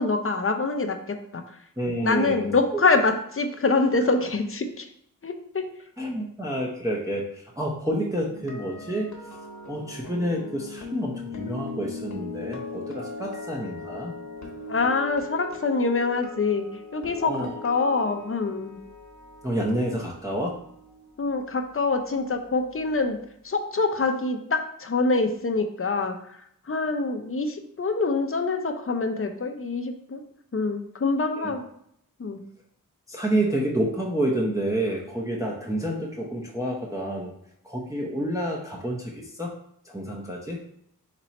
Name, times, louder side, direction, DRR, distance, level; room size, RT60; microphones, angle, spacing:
voice 1, 0.0-1.6 2.0-4.9 5.2-5.6 14.7-16.7 16.9-17.3 17.6-18.8 21.2-23.2 23.4-26.4 26.7-30.2 30.5-31.7 32.2-32.4, left 3 dB, 40° left, 6 dB, 0.6 m, -25 dB
voice 2, 1.8-2.8 6.0-9.4 9.7-14.1 17.2-17.5 19.4-20.6 31.4-31.5 33.1-37.3 37.6-39.5 39.8-40.6, right 1 dB, 10° right, -2 dB, 0.7 m, -29 dB
sound 1, 8.3-22.3 22.6-22.9, left 3 dB, 55° left, 1.0 m, -40 dB
4.2 x 3.0 x 4.1 m, 0.70 s
wide cardioid pair, 65°, 35 cm